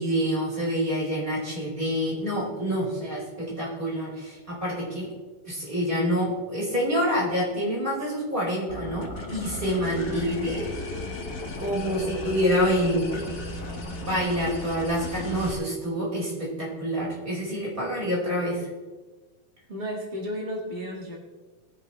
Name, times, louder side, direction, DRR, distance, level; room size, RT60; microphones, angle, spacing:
voice 1, 0.0-5.1 5.4-10.7 11.5-13.6 14.0-18.7, equal, 15° right, -5 dB, 4.7 m, -27 dB
sound 1, 8.7-15.5, left 2 dB, 70° left, 0.8 m, -35 dB
voice 2, 10.1-10.5 19.7-21.1, equal, 80° right, -1 dB, 0.4 m, -33 dB
20.5 x 10.5 x 3.2 m, 1.3 s
omnidirectional pair, 4.3 m